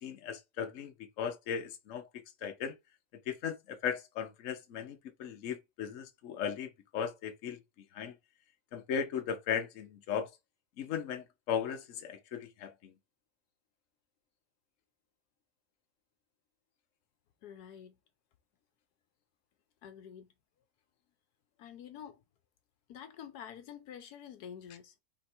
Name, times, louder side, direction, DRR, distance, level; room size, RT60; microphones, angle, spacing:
voice 1, 0.0-2.7 3.3-7.6 7.9-8.1 8.7-10.3 10.8-12.9, left 7 dB, 60° left, 1.0 m, -37 dB
voice 2, 17.4-18.0 19.8-20.3 21.6-22.2 22.9-25.0, left 9 dB, 75° left, 1.2 m, -48 dB
3.4 x 3.2 x 4.3 m
omnidirectional pair, 1.7 m